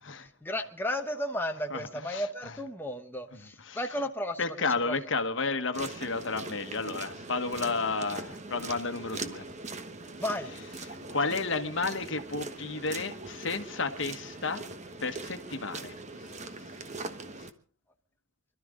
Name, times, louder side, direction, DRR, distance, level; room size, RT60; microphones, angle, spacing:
voice 1, 0.2-4.5 4.8-5.0 10.2-10.5, left 1 dB, 10° left, 1.0 m, -34 dB
voice 2, 4.4-9.4 11.1-14.6 15.0-16.0, left 4 dB, 65° left, 1.3 m, -32 dB
sound 1, 5.7-17.5, right 3 dB, 35° right, 1.1 m, -41 dB
25.5 x 12.5 x 3.8 m
head